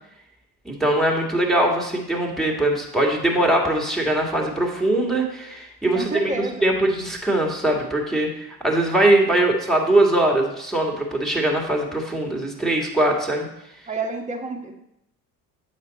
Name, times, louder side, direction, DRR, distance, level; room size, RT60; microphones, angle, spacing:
voice 1, 0.7-13.5, right 1 dB, ahead, 0 dB, 1.8 m, -21 dB
voice 2, 5.9-6.7 13.9-14.8, right 3 dB, 15° right, 2 dB, 1.3 m, -29 dB
8.6 x 5.2 x 4.1 m, 0.81 s
figure-of-eight pair, 60°, 47 cm